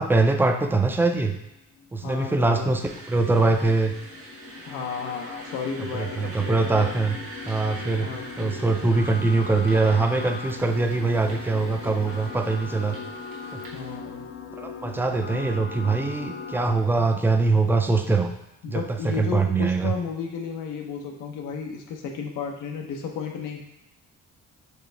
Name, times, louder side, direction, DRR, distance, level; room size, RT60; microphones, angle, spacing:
voice 1, 0.0-1.4 1.9-2.8 3.1-3.9 5.9-7.2 7.5-8.1 8.4-13.0 13.5-13.6 14.6-18.3 18.7-19.9, right 3 dB, 5° right, 5 dB, 0.4 m, -23 dB
sound 1, 1.8-16.8, left 5 dB, 45° left, 0.6 m, -39 dB
voice 2, 2.0-2.7 4.6-6.9 8.0-9.1 13.7-14.3 17.0-17.2 18.6-23.6, left 5 dB, 90° left, 2 dB, 0.8 m, -33 dB
sound 2, 2.8-14.0, right 2 dB, 85° right, 1.5 m, -44 dB
4.8 x 3.3 x 3.3 m, 0.87 s
cardioid pair, 90°, 30 cm